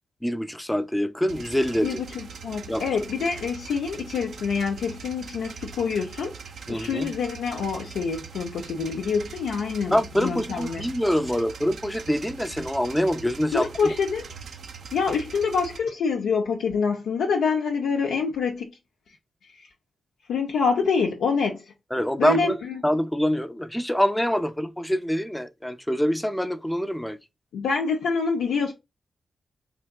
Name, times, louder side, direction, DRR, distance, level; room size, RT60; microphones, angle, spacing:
voice 1, 0.2-2.0 2.7-2.8 6.7-7.1 9.9-13.9 21.9-22.6 22.8-27.2, equal, 10° left, 0.4 m, -25 dB
sound 1, 1.3-15.8, right 5 dB, 80° right, 0.4 m, -41 dB
voice 2, 1.8-6.3 6.7-9.9 10.2-10.8 13.5-14.3 14.9-18.7 20.3-21.6 22.2-22.7 27.5-28.7, left 5 dB, 90° left, 0.4 m, -26 dB
3.3 x 2.7 x 2.2 m
supercardioid pair, 40°, 0 cm